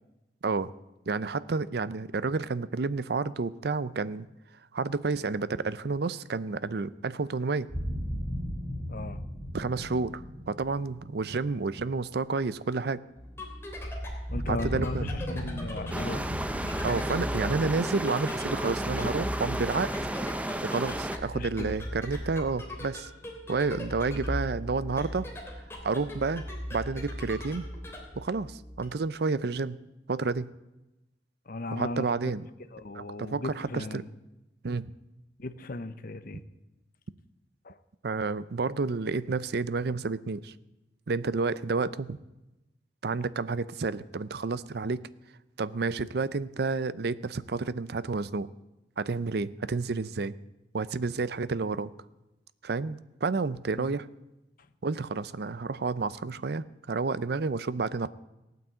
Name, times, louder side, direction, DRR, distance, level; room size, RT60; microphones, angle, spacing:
voice 1, 1.1-4.3 4.7-7.7 9.5-13.0 14.5-15.1 16.8-19.9 20.6-23.1 23.5-25.3 25.8-26.4 26.7-27.7 28.2-29.8 30.1-30.5 31.7-32.4 32.9-34.0 34.6-34.9 38.0-40.5 41.1-42.2 43.0-45.0 45.6-48.5 49.0-50.3 50.7-51.9 52.6-54.1 54.8-58.1, right 4 dB, 65° right, 16 dB, 0.6 m, -30 dB
sound 1, 7.7-12.6 14.3-19.9, equal, 30° right, 4.1 m, -37 dB
voice 2, 8.9-9.2 14.3-16.2 21.3-21.8 31.5-32.1 32.7-34.1 35.4-36.4 37.6-37.8 53.7-53.9 54.6-54.7, left 2 dB, 55° left, 11 dB, 0.9 m, -37 dB
sound 2, 13.2-28.9, equal, 15° left, 3.1 m, -38 dB
sound 3, 15.9-21.2, right 1 dB, 10° right, 0.7 m, -33 dB
16.5 x 9.3 x 7.8 m, 0.97 s
head